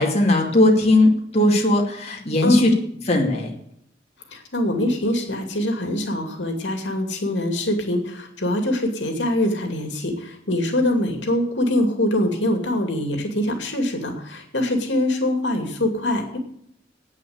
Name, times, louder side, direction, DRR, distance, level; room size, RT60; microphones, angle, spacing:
voice 1, 0.0-2.7 3.1-3.5, left 1 dB, 35° left, 0 dB, 2.5 m, -18 dB
voice 2, 4.3-16.4, left 1 dB, 80° left, 4 dB, 2.7 m, -23 dB
11.0 x 9.1 x 8.0 m, 0.70 s
head